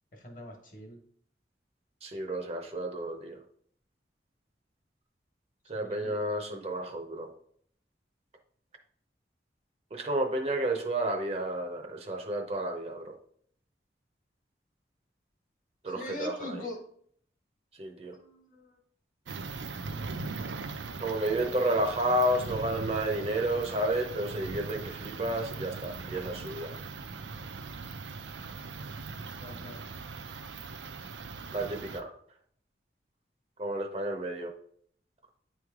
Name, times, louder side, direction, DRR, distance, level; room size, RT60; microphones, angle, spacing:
voice 1, 0.1-1.0 5.7-6.3 15.9-16.8 18.1-18.8 29.4-29.9, left 1 dB, 45° left, 2 dB, 1.2 m, -42 dB
voice 2, 2.0-3.4 5.7-7.3 9.9-13.1 15.8-16.5 17.8-18.2 21.0-26.7 31.5-32.1 33.6-34.5, right 1 dB, 35° right, 4 dB, 0.7 m, -31 dB
sound 1, 19.3-32.0, right 4 dB, 90° right, 0.5 m, -40 dB
9.1 x 3.2 x 3.6 m, 0.62 s
head